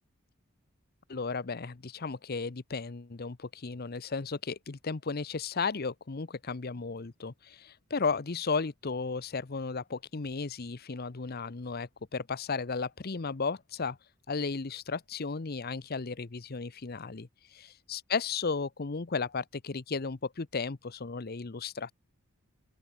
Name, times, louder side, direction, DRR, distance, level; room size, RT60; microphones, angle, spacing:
voice 1, 1.1-14.0 14.3-21.9, left 4 dB, 45° left, 0.7 m, -34 dB
open air
head